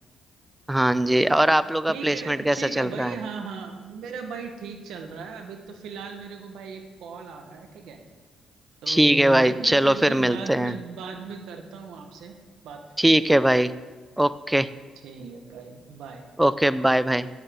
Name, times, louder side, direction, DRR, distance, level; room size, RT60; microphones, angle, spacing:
voice 1, 0.7-3.1 8.9-10.7 13.0-13.7 14.2-14.7 16.4-17.3, right 1 dB, 5° right, 15 dB, 0.4 m, -21 dB
voice 2, 1.9-8.0 8.8-12.3 12.6-13.2 15.0-16.2, right 5 dB, 80° right, 4 dB, 1.3 m, -37 dB
13.0 x 9.1 x 3.8 m, 1.4 s
cardioid pair, 90°, 0 cm